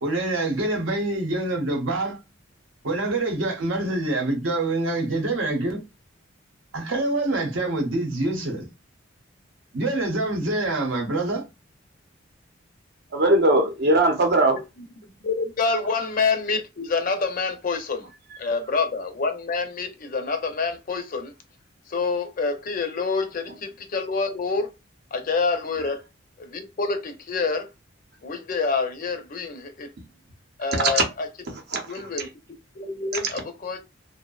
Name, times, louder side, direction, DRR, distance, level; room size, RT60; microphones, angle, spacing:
voice 1, 0.0-2.2 2.8-5.8 6.7-8.7 9.7-11.4, right 2 dB, 85° right, 0.8 m, -25 dB
voice 2, 13.1-14.6 30.9-31.0 31.7-32.3 33.2-33.3, right 2 dB, 55° right, 0.7 m, -20 dB
voice 3, 15.2-18.1 18.4-21.3 21.9-24.7 25.1-26.0 26.4-27.7 28.2-29.9 30.6-31.3 31.9-32.3 32.7-33.8, left 4 dB, 45° left, 0.5 m, -27 dB
2.6 x 2.1 x 2.3 m
head